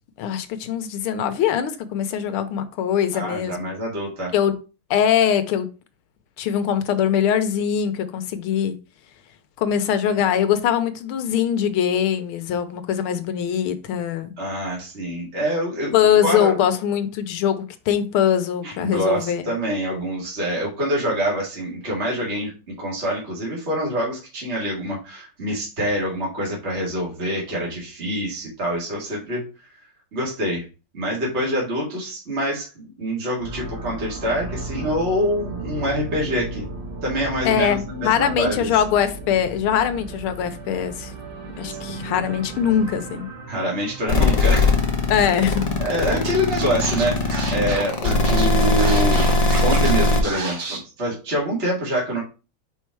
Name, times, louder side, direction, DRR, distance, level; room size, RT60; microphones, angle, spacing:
voice 1, 0.2-3.7 4.3-4.5 4.9-5.7 6.4-8.8 9.6-14.3 15.9-19.5 37.4-41.1 41.6-43.3 45.1-45.6, left 9 dB, 80° left, 1.6 m, -22 dB
voice 2, 3.1-4.3 14.4-15.9 16.2-16.5 18.6-29.4 30.1-30.6 30.9-32.7 33.0-36.7 37.0-38.7 43.5-44.7 45.8-52.2, equal, 30° right, 2.1 m, -25 dB
sound 1, 33.4-45.3, right 3 dB, 60° right, 2.1 m, -35 dB
sound 2, 44.1-50.2, left 2 dB, 35° left, 0.6 m, -19 dB
Scratching (performance technique), 46.2-46.3 46.6-49.9 50.2-50.8, right 3 dB, 75° right, 2.4 m, -30 dB
5.0 x 4.5 x 4.6 m
omnidirectional pair, 2.4 m